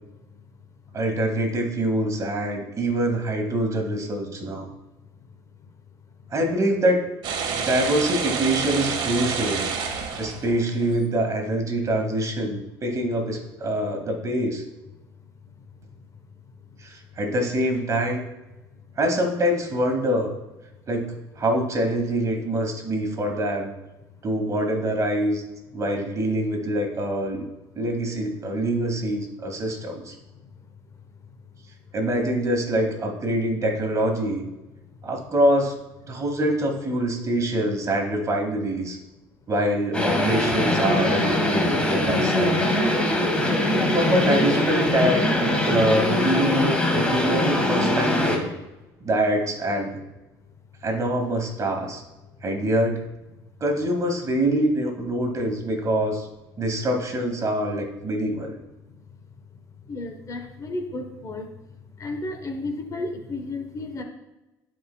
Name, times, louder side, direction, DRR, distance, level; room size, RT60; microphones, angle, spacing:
voice 1, 0.9-4.7 6.3-7.0 7.5-9.7 10.2-14.6 16.8-18.2 19.0-20.3 20.9-23.7 24.2-25.4 25.7-27.4 27.8-30.1 31.9-34.5 35.0-35.8 36.1-39.0 39.5-42.7 43.9-48.5 49.0-50.0 50.8-52.0 52.4-53.1 53.6-56.3 56.6-58.6, right 1 dB, 35° right, 2 dB, 2.1 m, -25 dB
sound 1, 7.2-10.9, right 6 dB, 65° right, 1.4 m, -28 dB
sound 2, 39.9-48.4, left 1 dB, 10° left, 1.7 m, -22 dB
voice 2, 59.9-61.5 62.0-64.0, left 2 dB, 35° left, 5 dB, 1.0 m, -33 dB
13.0 x 4.9 x 2.3 m, 1.0 s
supercardioid pair, 80°, 9 cm